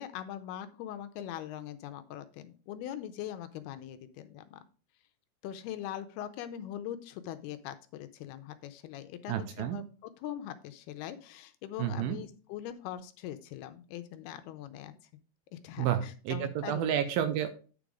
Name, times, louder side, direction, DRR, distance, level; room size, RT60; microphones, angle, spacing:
voice 1, 0.0-4.6 5.4-14.9 15.5-17.0, left 11 dB, 80° left, 10 dB, 2.4 m, -42 dB
voice 2, 9.3-9.8 11.8-12.2 15.8-17.5, right 10 dB, 80° right, 9 dB, 2.3 m, -30 dB
9.3 x 5.1 x 4.8 m, 0.38 s
omnidirectional pair, 4.7 m